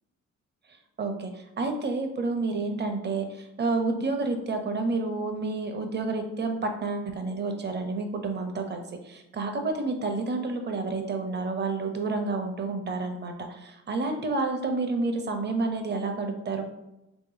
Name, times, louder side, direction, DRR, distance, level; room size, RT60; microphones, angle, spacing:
voice 1, 1.0-16.6, right 3 dB, 35° right, 5 dB, 0.7 m, -29 dB
3.5 x 3.0 x 3.8 m, 0.91 s
cardioid pair, 90°, 30 cm